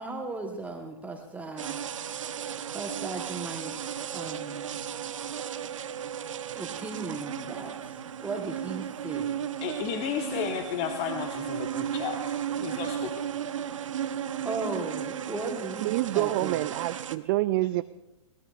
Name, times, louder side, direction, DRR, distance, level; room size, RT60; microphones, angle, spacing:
voice 1, 0.0-1.8 2.7-4.8 6.5-7.7 8.2-9.3 14.4-16.6, right 3 dB, 10° right, 2 dB, 1.2 m, -36 dB
sound 1, 1.6-17.2, right 9 dB, 70° right, 0.8 m, -35 dB
voice 2, 9.6-13.2, left 7 dB, 40° left, 5 dB, 1.2 m, -33 dB
voice 3, 15.8-17.8, right 18 dB, 45° right, 13 dB, 0.4 m, -27 dB
22.0 x 17.5 x 2.4 m, 1.0 s
hypercardioid pair, 110°, 17 cm